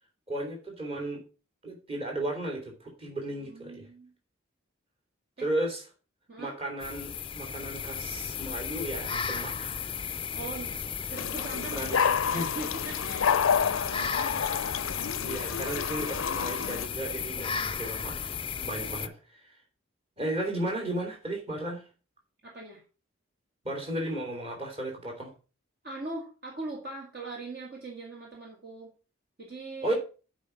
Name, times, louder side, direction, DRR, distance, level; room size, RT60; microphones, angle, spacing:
voice 1, 0.3-1.2 1.6-3.9 5.4-5.8 6.4-9.8 11.7-12.0 12.3-12.5 15.2-18.2 18.6-19.5 20.2-21.8 23.6-25.3 29.8-29.9, right 1 dB, 30° right, 2 dB, 3.2 m, -34 dB
voice 2, 3.3-4.1 5.4-5.5 6.3-6.6 10.3-10.8 11.1-14.5 17.4-17.8 22.4-22.8 25.8-28.9 29.4-29.9, right 2 dB, 50° right, -1 dB, 2.0 m, -41 dB
sound 1, 6.8-19.1, left 7 dB, 25° left, 0.4 m, -35 dB
sound 2, 11.2-16.9, left 7 dB, 80° left, 0.5 m, -29 dB
8.4 x 5.2 x 6.9 m, 0.35 s
head